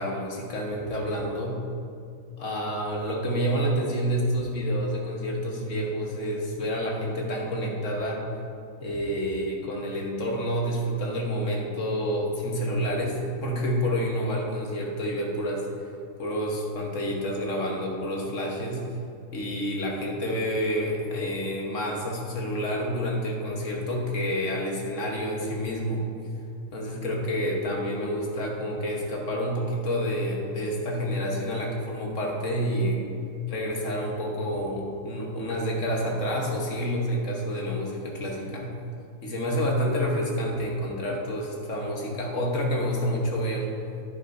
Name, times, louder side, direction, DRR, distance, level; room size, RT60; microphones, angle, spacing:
voice 1, 0.0-1.6 2.4-8.2 8.8-15.6 16.2-18.8 19.3-26.0 26.7-33.0 33.5-38.7 39.2-43.7, equal, 40° left, -1 dB, 1.3 m, -28 dB
10.0 x 9.3 x 2.7 m, 2.3 s
omnidirectional pair, 2.4 m